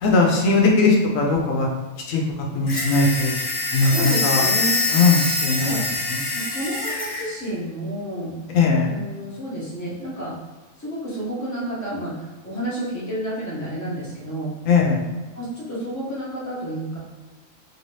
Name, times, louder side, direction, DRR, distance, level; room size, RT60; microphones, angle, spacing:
voice 1, 0.0-1.7 2.1-2.2 2.5-3.3 3.7-4.4 4.9-5.8 6.1-6.2 8.5-8.9 14.7-15.0, left 3 dB, 80° left, 0 dB, 1.0 m, -19 dB
sound 1, 2.7-7.3, left 2 dB, 40° left, 0.3 m, -24 dB
voice 2, 3.8-4.8 5.6-5.8 6.3-8.3 8.8-10.3 10.8-14.5 15.3-17.0, right 1 dB, 15° left, -7 dB, 0.8 m, -30 dB
3.0 x 2.7 x 3.1 m, 1.2 s
omnidirectional pair, 1.4 m